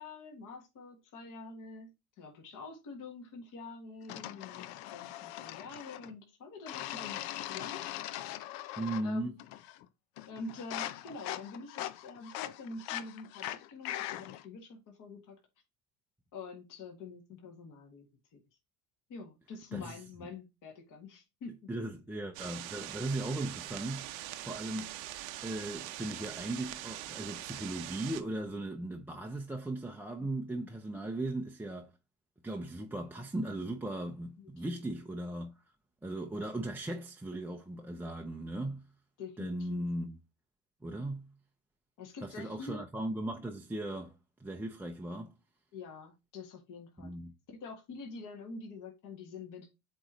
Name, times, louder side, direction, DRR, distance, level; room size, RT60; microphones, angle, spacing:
voice 1, 0.0-1.9 2.2-7.2 7.5-7.9 9.0-9.4 10.3-15.4 16.3-18.1 18.3-18.4 19.1-21.7 34.4-34.8 39.2-39.9 42.0-42.8 45.7-47.1 47.5-49.7, left 4 dB, 50° left, 1.9 m, -46 dB
sound 1, 4.1-6.1 6.7-9.1 9.4-9.9 10.2-14.5, left 14 dB, 85° left, 0.7 m, -41 dB
voice 2, 8.8-9.4 19.7-20.0 21.7-24.9 25.4-31.9 32.4-35.5 36.0-38.9 39.4-40.2 40.8-41.3 42.2-45.3 47.0-47.3, right 1 dB, 5° right, 0.5 m, -37 dB
sound 2, 22.3-28.2, right 14 dB, 85° right, 0.8 m, -43 dB
7.9 x 3.1 x 3.9 m
cardioid pair, 130°, 39 cm